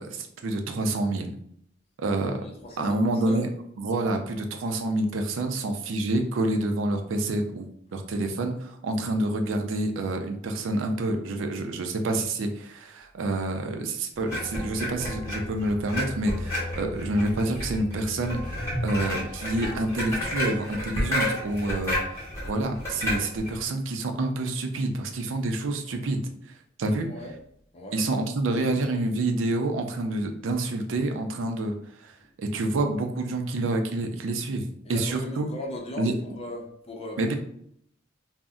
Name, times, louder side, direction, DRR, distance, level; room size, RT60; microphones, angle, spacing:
voice 1, 0.0-1.4 2.0-2.4 2.8-3.5 3.8-26.2 26.8-27.1 27.9-32.1 32.4-35.5 36.0-36.1 37.2-37.3, right 2 dB, 80° right, 5 dB, 0.4 m, -28 dB
voice 2, 2.4-3.4 26.9-27.3 27.7-28.0 34.8-37.3, left 1 dB, 30° left, 0 dB, 0.6 m, -38 dB
sound 1, 14.3-23.6, left 1 dB, 15° left, 1.0 m, -31 dB
2.6 x 2.0 x 3.5 m, 0.69 s
head